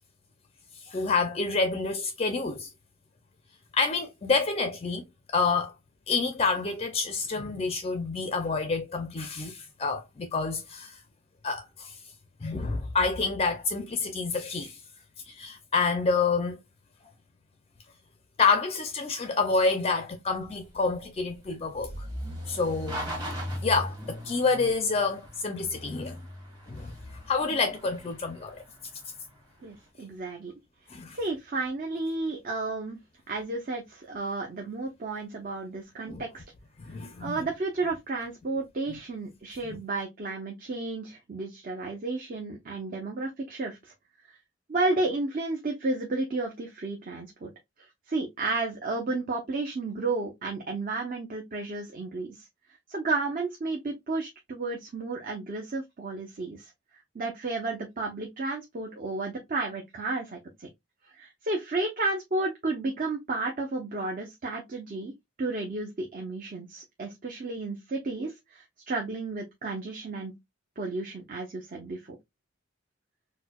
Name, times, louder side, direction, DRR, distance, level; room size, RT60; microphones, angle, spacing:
voice 1, 0.9-2.7 3.7-5.7 6.1-11.0 11.4-12.0 12.4-14.8 15.3-16.6 18.4-22.1 22.5-23.1 23.6-26.2 26.7-26.9 27.3-28.6 30.9-31.2 36.1-36.2 36.8-37.3 39.6-39.8, left 4 dB, 30° left, 0.4 m, -28 dB
sound 1, 20.4-29.6, equal, 20° right, 1.1 m, -39 dB
voice 2, 29.6-30.5 31.1-33.0 33.3-36.4 37.2-43.9 44.7-47.5 47.8-52.5 52.9-56.7 57.1-60.7 61.1-65.1 65.4-70.3 70.8-72.2, right 3 dB, 40° right, 0.6 m, -32 dB
4.4 x 2.1 x 2.2 m
head